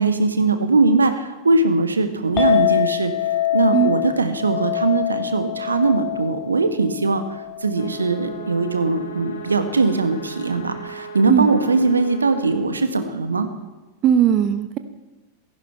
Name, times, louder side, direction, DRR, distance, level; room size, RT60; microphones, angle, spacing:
voice 1, 0.0-3.1 3.5-7.2 7.6-13.5, right 3 dB, 75° right, 9 dB, 1.3 m, -20 dB
Chink clink, 2.4-8.7, left 12 dB, 30° left, 2.9 m, -25 dB
sound 1, 7.7-12.6, right 4 dB, 75° left, 3.8 m, -37 dB
voice 2, 14.0-14.8, right 10 dB, 35° right, 10 dB, 0.8 m, -18 dB
16.5 x 14.5 x 4.6 m, 1.2 s
figure-of-eight pair, 90°, 0 cm